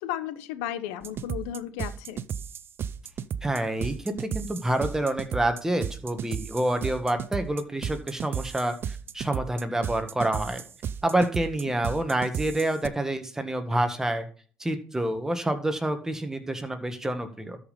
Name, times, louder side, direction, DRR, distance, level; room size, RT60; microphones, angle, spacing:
voice 1, 0.0-2.2, left 11 dB, 85° left, 12 dB, 1.1 m, -34 dB
sound 1, 1.0-12.9, right 8 dB, 45° right, 0.6 m, -34 dB
voice 2, 3.4-10.6 11.0-14.3 14.6-17.6, right 1 dB, 10° right, 7 dB, 1.8 m, -28 dB
12.5 x 5.4 x 5.3 m, 0.42 s
supercardioid pair, 90°, 5 cm